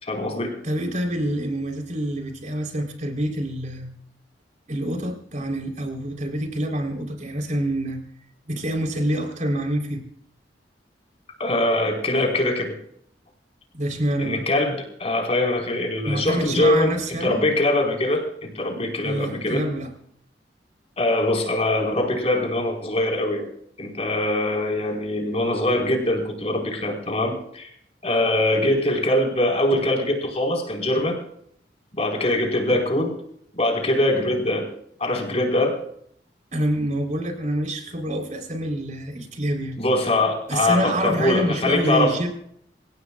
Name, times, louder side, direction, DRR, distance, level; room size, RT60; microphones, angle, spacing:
voice 1, 0.0-0.6 11.4-12.8 14.2-19.6 21.0-23.5 23.8-27.7 28.0-31.2 31.9-33.1 33.5-34.7 35.0-35.8 39.8-42.2, left 1 dB, 35° left, 1 dB, 4.8 m, -23 dB
voice 2, 0.6-3.9 4.7-8.0 8.5-10.1 13.7-14.4 16.1-17.4 19.0-19.9 36.5-39.8 40.5-42.3, right 1 dB, 45° right, 4 dB, 3.8 m, -26 dB
27.0 x 16.5 x 2.4 m, 0.68 s
head